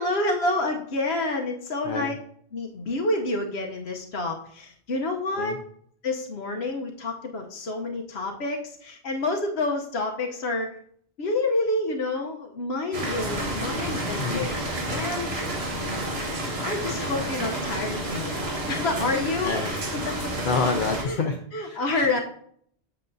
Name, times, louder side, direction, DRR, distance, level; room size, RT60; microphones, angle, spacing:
voice 1, 0.0-2.1 2.5-5.6 6.0-10.8 11.2-14.5 14.9-15.3 16.6-19.5 20.1-20.2 21.0-21.2 21.5-22.2, left 2 dB, 80° left, 2 dB, 1.1 m, -28 dB
voice 2, 1.8-2.2 5.4-5.6 14.2-14.5 19.4-21.8, left 4 dB, 55° left, 2 dB, 0.8 m, -29 dB
sound 1, 12.9-21.0, right 1 dB, 70° right, 1.8 m, -30 dB
7.7 x 7.2 x 2.6 m, 0.63 s
omnidirectional pair, 1.1 m